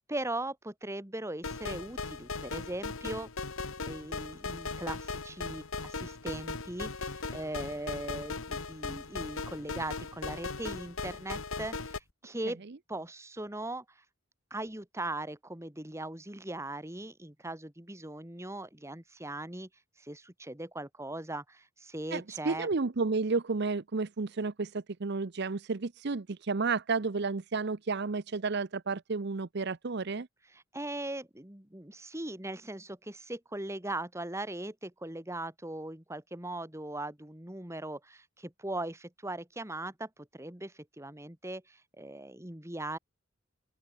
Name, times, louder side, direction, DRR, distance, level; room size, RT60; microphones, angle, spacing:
voice 1, 0.1-3.3 3.9-12.6 12.9-13.8 14.5-19.7 20.0-22.7 30.5-43.0, right 1 dB, 15° right, 1.9 m, -39 dB
sound 1, 1.4-12.0, left 4 dB, 75° left, 1.7 m, -38 dB
voice 2, 22.1-30.3, right 4 dB, 50° right, 0.7 m, -32 dB
open air
head